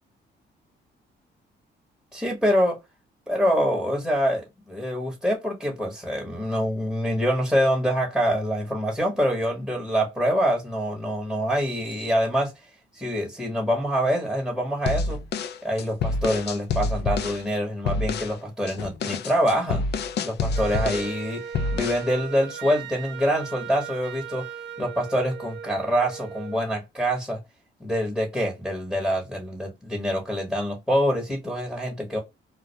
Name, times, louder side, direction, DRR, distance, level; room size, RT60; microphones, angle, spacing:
voice 1, 2.1-2.8 3.3-12.5 12.9-15.2 15.6-19.8 20.2-21.4 21.7-24.5 24.8-27.4 27.8-32.2, equal, ahead, 1.0 m, -25 dB
sound 1, 14.9-17.4 17.9-18.4 18.7-21.2 21.5-22.1, left 3 dB, 60° left, 0.4 m, -27 dB
Wind instrument woodwind instrument, 20.5-26.6, right 8 dB, 65° right, 0.5 m, -38 dB
2.1 x 2.1 x 2.7 m
cardioid pair, 90°, 20 cm